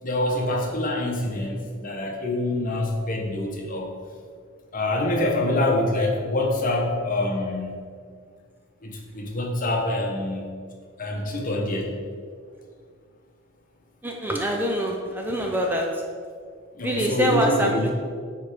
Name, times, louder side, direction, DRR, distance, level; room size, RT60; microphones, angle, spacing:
voice 1, 0.0-3.9 4.7-7.8 8.8-10.4 11.0-12.0 16.7-17.9, left 1 dB, 40° left, 0 dB, 1.1 m, -26 dB
voice 2, 14.0-16.0 16.8-17.7, right 1 dB, 10° right, 0 dB, 0.5 m, -24 dB
9.2 x 3.4 x 4.9 m, 2.1 s
head